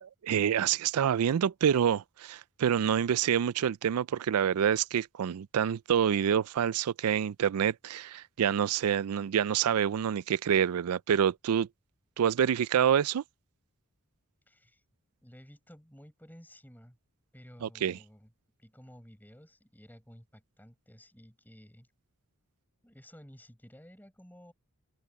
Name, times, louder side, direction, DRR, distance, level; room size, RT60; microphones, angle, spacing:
voice 1, 0.0-11.7 12.2-13.2 17.6-18.0, right 8 dB, 80° right, 0.4 m, -27 dB
voice 2, 14.5-14.8 15.2-17.0 17.3-18.3 18.6-21.9 22.8-24.5, equal, 10° left, 6.9 m, -54 dB
head